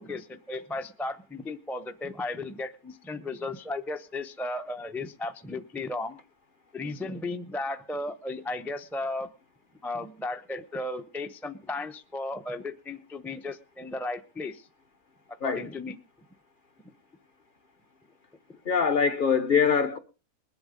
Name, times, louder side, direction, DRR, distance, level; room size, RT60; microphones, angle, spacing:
voice 1, 0.0-6.2 6.7-9.3 9.8-14.7 15.4-16.0 18.5-18.6, left 2 dB, ahead, 0.4 m, -35 dB
voice 2, 18.6-20.0, left 6 dB, 40° left, 0.9 m, -23 dB
21.5 x 7.9 x 5.2 m
omnidirectional pair, 1.7 m